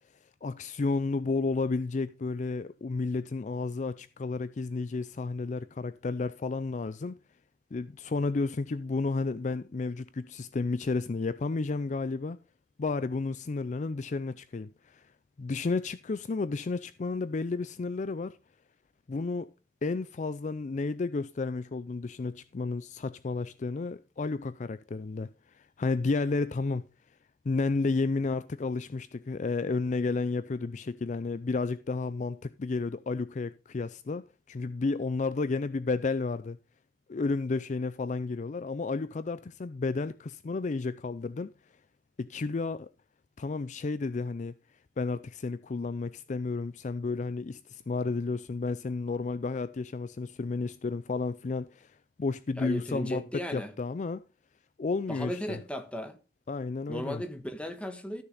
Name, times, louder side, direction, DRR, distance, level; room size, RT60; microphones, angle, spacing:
voice 1, 0.4-7.2 7.7-12.4 12.8-15.0 15.4-18.4 19.1-19.5 19.8-25.3 25.5-26.9 27.5-34.2 34.5-36.6 37.1-41.5 42.2-42.9 43.4-44.5 45.0-51.9 52.2-53.2 53.5-54.2 54.8-55.6 56.5-57.2, left 3 dB, 45° left, 0.4 m, -32 dB
voice 2, 52.6-53.7 55.1-56.2 56.9-58.2, equal, 5° left, 1.3 m, -36 dB
14.0 x 6.6 x 3.9 m
head